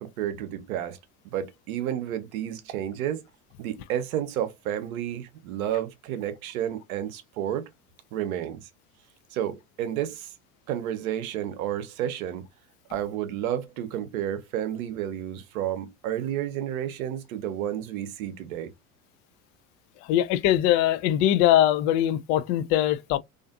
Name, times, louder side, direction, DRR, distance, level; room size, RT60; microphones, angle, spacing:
voice 1, 0.0-1.0 1.2-3.2 3.6-7.7 8.1-8.6 9.3-10.3 10.7-12.5 12.9-18.7, right 11 dB, 65° right, 0.7 m, -31 dB
voice 2, 20.1-23.2, left 12 dB, 40° left, 0.4 m, -22 dB
2.5 x 2.5 x 2.4 m
hypercardioid pair, 75°, 45 cm